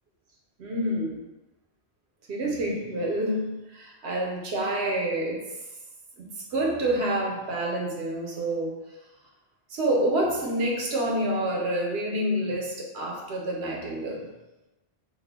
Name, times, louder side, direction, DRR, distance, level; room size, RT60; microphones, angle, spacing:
voice 1, 0.6-1.3 2.3-5.4 6.2-8.8 9.7-14.3, right 1 dB, 85° right, -1 dB, 1.0 m, -28 dB
3.2 x 2.1 x 3.5 m, 1.0 s
omnidirectional pair, 1.1 m